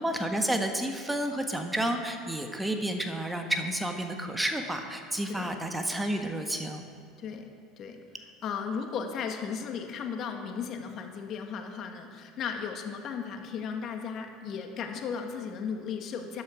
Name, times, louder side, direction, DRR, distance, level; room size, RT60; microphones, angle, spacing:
voice 1, 0.0-6.8, right 1 dB, 10° right, 4 dB, 1.4 m, -30 dB
voice 2, 7.2-8.0 8.4-16.4, left 6 dB, 50° left, 5 dB, 1.4 m, -36 dB
13.5 x 10.5 x 5.0 m, 2.1 s
hypercardioid pair, 85°, 0 cm